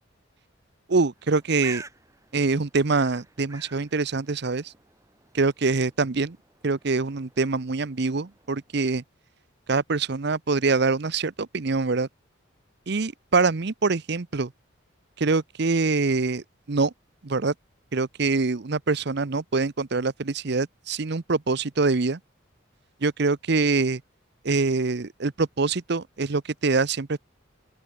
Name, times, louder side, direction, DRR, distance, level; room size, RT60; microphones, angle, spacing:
voice 1, 0.9-1.8 2.3-4.7 5.3-6.4 6.6-9.0 9.7-12.1 12.9-14.5 15.2-16.9 17.2-17.5 17.9-22.2 23.0-24.0 24.4-27.2, right 3 dB, 55° right, 0.8 m, -24 dB
Bird, 1.2-8.8, right 3 dB, 15° right, 1.8 m, -48 dB
open air
head